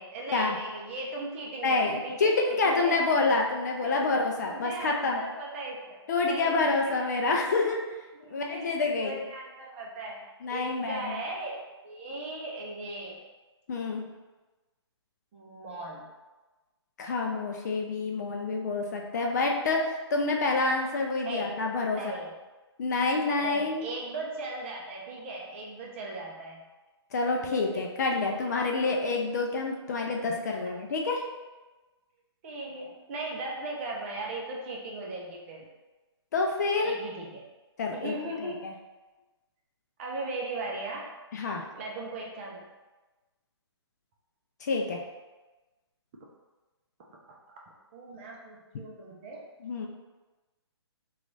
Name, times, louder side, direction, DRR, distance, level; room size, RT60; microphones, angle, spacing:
voice 1, 0.0-2.3 2.6-3.1 3.8-4.0 4.4-6.6 6.9-7.0 8.2-8.6 9.0-13.2 15.3-16.1 19.1-19.3 21.2-21.5 21.9-22.3 23.3-26.7 27.5-27.8 30.5-30.8 32.4-35.7 36.8-37.4 37.9-38.6 40.0-41.1 41.8-42.6 47.9-49.4, right 2 dB, 25° right, -2 dB, 0.6 m, -38 dB
voice 2, 1.6-5.2 6.1-7.8 8.3-9.2 10.4-11.2 13.7-14.0 17.0-22.1 22.8-23.9 27.1-31.2 36.3-37.0 37.8-38.1 38.4-38.7 41.3-41.6 44.6-45.0 49.6-49.9, left 3 dB, 40° left, 1 dB, 0.4 m, -27 dB
3.0 x 2.4 x 3.8 m, 1.2 s
hypercardioid pair, 150°, 14 cm